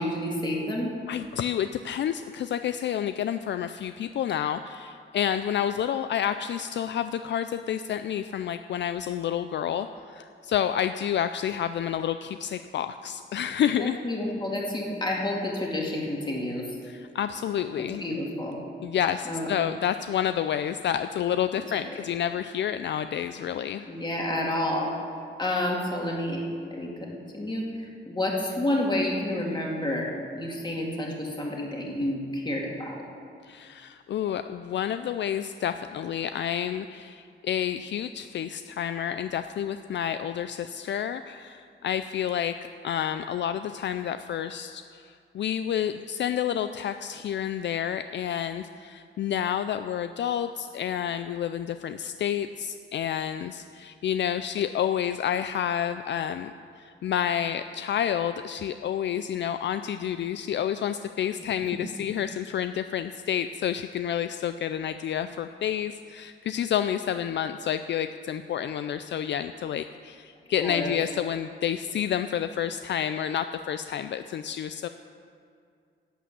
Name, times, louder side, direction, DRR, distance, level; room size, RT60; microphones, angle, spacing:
voice 1, 0.0-1.0 13.8-16.7 17.8-18.6 19.2-19.5 21.9-22.0 23.9-24.9 25.4-27.6 28.1-33.1 70.6-70.9, left 1 dB, 20° left, -2 dB, 2.3 m, -29 dB
voice 2, 1.1-14.0 16.8-18.0 18.8-23.8 33.4-42.6 42.8-74.9, left 9 dB, 65° left, 10 dB, 0.4 m, -29 dB
11.0 x 8.5 x 7.2 m, 2.3 s
wide cardioid pair, 120°, 20 cm